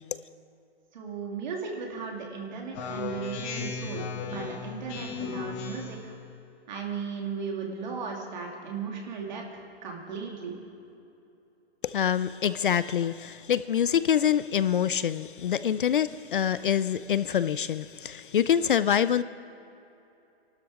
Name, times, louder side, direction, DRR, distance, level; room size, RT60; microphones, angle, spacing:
voice 1, 0.9-6.1 6.7-10.6, right 5 dB, 45° right, 2.7 m, -36 dB
Speech synthesizer, 2.7-6.1, left 5 dB, 15° left, 1.0 m, -35 dB
voice 2, 11.8-19.2, left 9 dB, 55° left, 0.4 m, -25 dB
26.0 x 12.5 x 3.7 m
hypercardioid pair, 170°, 32 cm